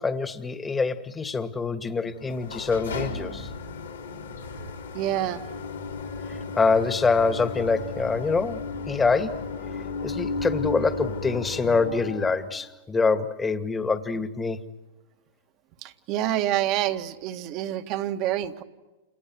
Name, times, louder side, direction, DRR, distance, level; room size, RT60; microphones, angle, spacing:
voice 1, 0.0-3.5 6.6-9.4 10.0-14.6, left 4 dB, 15° left, 9 dB, 2.0 m, -25 dB
sound 1, 2.1-12.5, left 3 dB, 90° left, 4.7 m, -34 dB
voice 2, 4.9-5.4 15.8-18.6, right 12 dB, 45° right, 7 dB, 2.1 m, -27 dB
29.5 x 29.0 x 6.3 m, 1.1 s
hypercardioid pair, 100°, 0 cm